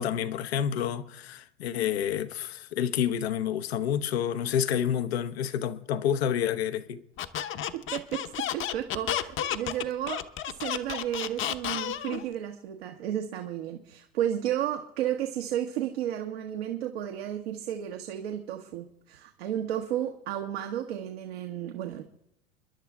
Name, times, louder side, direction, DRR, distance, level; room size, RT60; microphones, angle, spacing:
voice 1, 0.0-7.0, left 9 dB, 80° left, 1.0 m, -29 dB
Squeak, 7.2-12.2, left 11 dB, 40° left, 0.9 m, -31 dB
voice 2, 7.7-10.3 10.6-22.0, right 11 dB, 75° right, 1.4 m, -33 dB
30.0 x 11.0 x 3.6 m
hypercardioid pair, 85°, 31 cm